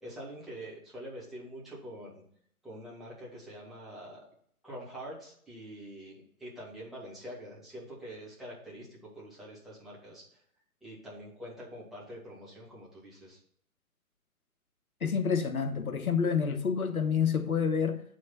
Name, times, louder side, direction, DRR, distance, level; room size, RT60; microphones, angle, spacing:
voice 1, 0.0-2.2 2.6-4.2 4.6-10.4 10.8-13.4, equal, ahead, 2.5 m, -45 dB
voice 2, 15.0-18.0, left 6 dB, 75° left, 1.2 m, -28 dB
8.0 x 6.4 x 4.3 m
figure-of-eight pair, 140°, 44 cm